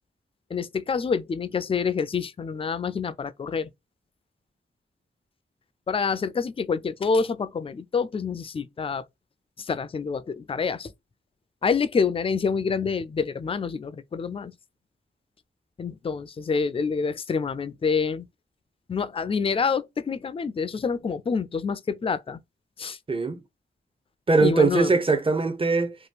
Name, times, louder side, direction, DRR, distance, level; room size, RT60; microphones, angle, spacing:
voice 1, 0.5-3.7 5.9-9.0 9.6-10.9 11.6-14.5 15.8-18.2 18.9-22.4 22.8-23.0 24.4-24.9, left 5 dB, 25° left, 0.3 m, -27 dB
voice 2, 23.1-23.4 24.3-26.0, right 3 dB, 25° right, 0.7 m, -21 dB
2.9 x 2.3 x 3.2 m
cardioid pair, 60°, 21 cm